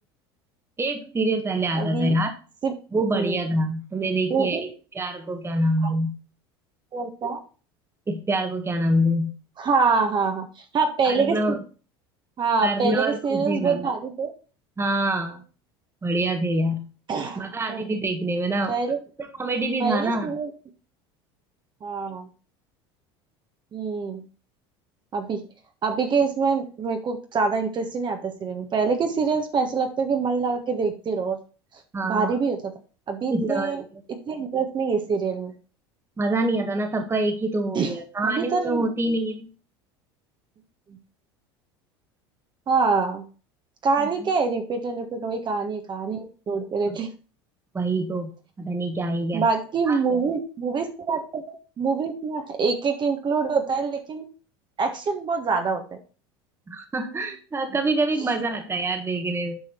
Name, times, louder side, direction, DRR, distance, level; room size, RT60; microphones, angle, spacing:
voice 1, 0.8-2.3 2.9-6.2 8.1-9.3 11.0-11.6 12.6-13.9 14.8-15.4 16.0-16.8 17.4-18.7 19.2-20.3 31.9-32.3 33.3-34.0 36.2-39.5 46.9-47.0 47.7-48.3 48.6-49.5 49.9-50.0 56.7-59.6, right 1 dB, 20° right, 6 dB, 1.5 m, -25 dB
voice 2, 1.8-2.2 2.6-2.7 3.1-3.4 4.3-4.5 5.8-5.9 6.9-7.4 9.6-10.5 10.7-11.6 12.4-14.3 17.1-17.8 18.7-19.0 19.8-20.5 21.8-22.3 23.7-24.2 25.1-25.4 25.8-31.4 32.0-32.7 33.1-33.8 34.1-35.5 37.7-37.9 38.2-38.8 42.7-43.2 43.8-47.1 49.3-54.3 54.8-56.0, right 4 dB, 35° right, 4 dB, 1.5 m, -25 dB
9.1 x 5.0 x 4.5 m, 0.36 s
hypercardioid pair, 85°, 13 cm